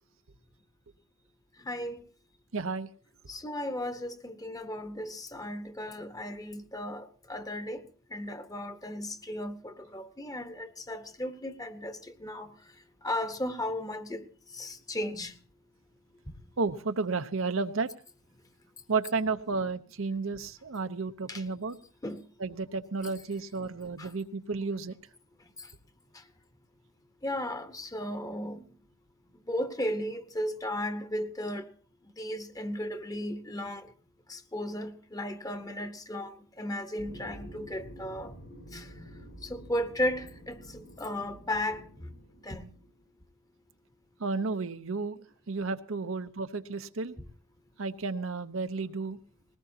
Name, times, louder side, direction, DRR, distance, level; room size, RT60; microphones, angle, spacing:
voice 1, 1.6-2.0 3.3-7.8 8.1-12.5 13.0-14.2 14.5-15.3 21.3-21.4 22.0-22.2 24.0-24.1 27.2-28.6 29.5-31.7 32.2-33.9 34.3-36.3 36.6-38.3 38.7-38.9 39.4-41.8 42.4-42.7, left 1 dB, 15° left, 1.0 m, -35 dB
voice 2, 2.5-2.9 16.6-17.9 18.9-21.8 22.4-24.9 44.2-45.2 45.5-47.1 47.8-49.2, right 4 dB, 75° right, 0.8 m, -32 dB
sound 1, 37.0-43.0, equal, 70° left, 4.7 m, -49 dB
20.5 x 18.5 x 2.8 m
head